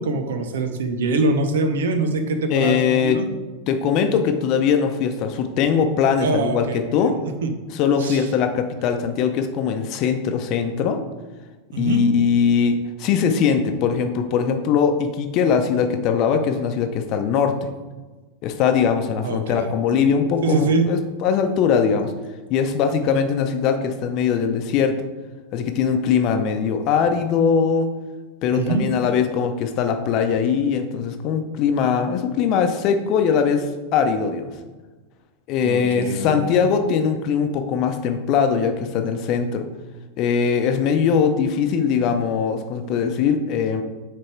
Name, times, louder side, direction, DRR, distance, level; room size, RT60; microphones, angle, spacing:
voice 1, 0.0-3.3 6.2-7.1 7.4-7.5 8.0-8.2 11.7-12.0 19.2-19.7 20.4-20.9 28.5-28.9 35.6-36.5, right 3 dB, 75° right, 7 dB, 0.7 m, -23 dB
voice 2, 2.5-3.2 3.7-7.1 7.7-11.0 11.8-17.7 18.4-22.1 22.5-25.0 25.5-27.9 28.4-34.6 35.5-39.7 40.2-43.8, left 6 dB, 50° left, 7 dB, 0.7 m, -21 dB
6.5 x 3.4 x 4.5 m, 1.3 s
hypercardioid pair, 95°, 0 cm